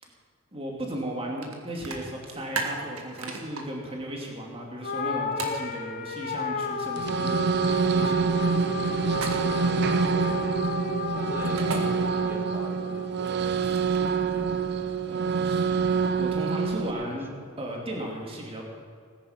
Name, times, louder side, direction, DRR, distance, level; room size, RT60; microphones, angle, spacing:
voice 1, 0.5-7.5 7.9-8.3 15.0-15.7 16.2-17.3 17.6-18.6, right 1 dB, 25° right, -1 dB, 2.5 m, -35 dB
sound 1, 1.4-1.5 1.8-3.6 5.4-5.6 9.1-9.7 11.4-11.8 13.2-14.1, right 4 dB, 80° right, 1.8 m, -34 dB
sound 2, 4.8-13.4, left 3 dB, 40° left, 1.0 m, -33 dB
sound 3, 7.0-16.9, right 5 dB, 50° right, 0.6 m, -26 dB
voice 2, 11.1-13.6 14.0-15.0 16.8-17.5, equal, 10° right, 2 dB, 1.6 m, -43 dB
18.5 x 10.0 x 5.8 m, 2.1 s
head